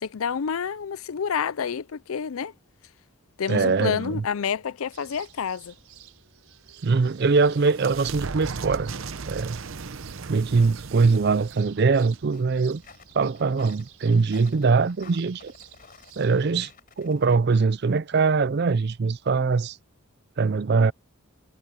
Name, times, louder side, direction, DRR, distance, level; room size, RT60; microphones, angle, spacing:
voice 1, 0.0-2.5 3.4-5.7, left 6 dB, 75° left, 0.5 m, -28 dB
voice 2, 3.5-4.2 6.8-8.9 9.3-9.6 10.3-12.8 13.1-15.5 16.2-16.7 17.0-19.8 20.4-20.9, right 4 dB, 50° right, 0.4 m, -22 dB
sound 1, 4.9-16.5, right 11 dB, 85° right, 4.9 m, -52 dB
sound 2, 6.7-13.1, right 4 dB, 70° right, 0.8 m, -38 dB
sound 3, 12.3-17.3, left 5 dB, 40° left, 4.9 m, -52 dB
head